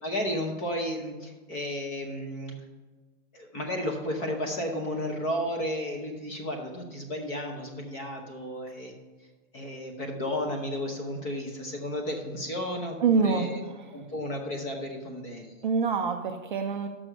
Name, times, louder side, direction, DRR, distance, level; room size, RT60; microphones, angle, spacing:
voice 1, 0.0-2.6 3.3-8.9 9.5-13.6 13.9-15.6, left 1 dB, 20° left, 2 dB, 0.7 m, -33 dB
voice 2, 13.0-13.6 15.6-16.9, right 5 dB, 40° right, 5 dB, 0.4 m, -25 dB
6.1 x 6.1 x 6.5 m, 1.3 s
supercardioid pair, 175°, 39 cm